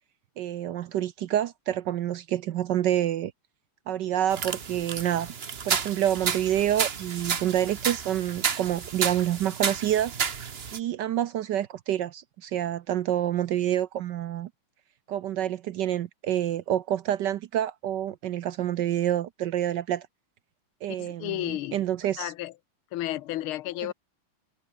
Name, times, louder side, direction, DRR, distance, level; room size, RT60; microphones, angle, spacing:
voice 1, 0.4-3.3 3.9-5.3 5.6-10.1 10.7-14.5 15.1-20.1 20.8-22.3, right 11 dB, 70° right, 1.1 m, -28 dB
sound 1, 4.3-10.8, right 6 dB, 40° right, 1.0 m, -31 dB
voice 2, 20.9-21.8 22.2-22.5 22.9-23.9, left 15 dB, 75° left, 1.7 m, -32 dB
omnidirectional pair, 2.4 m